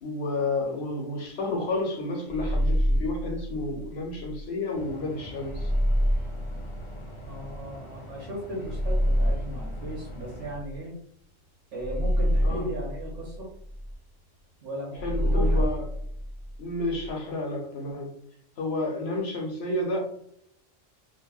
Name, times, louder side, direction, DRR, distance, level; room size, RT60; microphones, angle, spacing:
voice 1, 0.0-5.7 12.4-12.7 15.0-15.8 16.6-18.1 18.6-20.0, left 2 dB, 60° left, 0 dB, 0.9 m, -31 dB
sound 1, 2.3-4.4 5.4-7.6 8.6-11.0 11.8-13.9 14.9-17.1, equal, 10° right, 0.5 m, -27 dB
sound 2, 4.7-10.6, right 1 dB, 40° left, 0.4 m, -44 dB
voice 2, 7.1-10.9 11.7-13.5 14.6-15.7, equal, 70° right, -5 dB, 1.1 m, -37 dB
3.3 x 2.0 x 2.3 m, 0.69 s
omnidirectional pair, 1.3 m